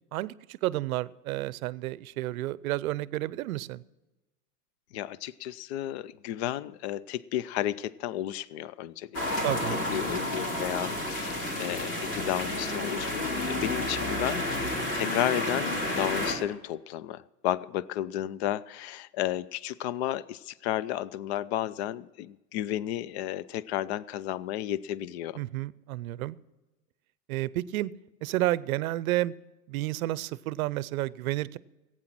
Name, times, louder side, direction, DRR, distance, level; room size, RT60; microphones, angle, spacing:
voice 1, 0.1-3.8 9.4-9.8 25.4-26.4 27.3-27.9 28.2-29.3 29.7-31.6, right 16 dB, 60° right, 20 dB, 0.6 m, -31 dB
voice 2, 4.9-25.4, left 12 dB, 45° left, 20 dB, 0.5 m, -33 dB
sound 1, 9.1-16.3, left 1 dB, 25° left, 3.3 m, -31 dB
16.0 x 9.0 x 6.1 m, 1.1 s
hypercardioid pair, 130°, 47 cm